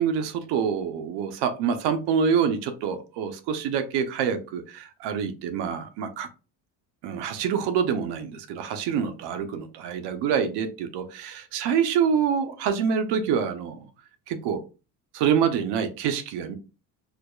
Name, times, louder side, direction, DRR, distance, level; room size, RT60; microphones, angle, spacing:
voice 1, 0.0-6.3 7.0-13.9 14.3-14.6 15.2-16.5, right 7 dB, 85° right, 0.7 m, -26 dB
4.8 x 2.3 x 2.3 m
cardioid pair, 140°, 41 cm